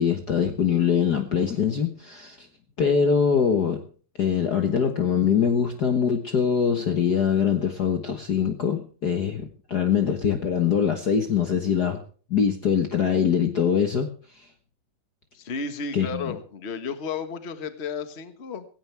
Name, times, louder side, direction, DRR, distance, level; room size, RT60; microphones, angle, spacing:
voice 1, 0.0-2.5 2.8-3.8 4.2-12.0 12.3-14.1 14.4-14.5 15.9-16.4, left 7 dB, 90° left, 5 dB, 0.8 m, -23 dB
voice 2, 15.3-18.6, left 5 dB, 60° left, 9 dB, 0.6 m, -33 dB
17.0 x 16.5 x 3.4 m, 0.41 s
omnidirectional pair, 3.8 m